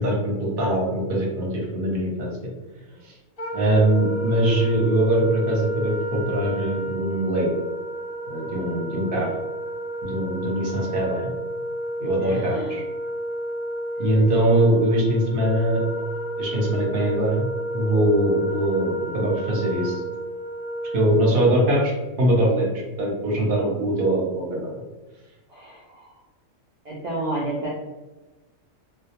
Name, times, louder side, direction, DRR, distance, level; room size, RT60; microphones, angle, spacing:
voice 1, 0.0-2.3 3.0-3.1 3.5-7.5 8.3-9.3 10.0-11.3 12.0-12.8 14.0-15.8 16.4-17.5 17.7-20.0 20.9-22.7 23.0-24.7, right 1 dB, 55° right, -2 dB, 0.7 m, -22 dB
Wind instrument woodwind instrument, 3.4-21.5, right 1 dB, 40° left, 0.7 m, -31 dB
voice 2, 12.2-12.7 25.5-26.1 26.8-27.7, right 2 dB, 85° right, -7 dB, 0.3 m, -31 dB
2.2 x 2.1 x 2.8 m, 1.2 s
omnidirectional pair, 1.3 m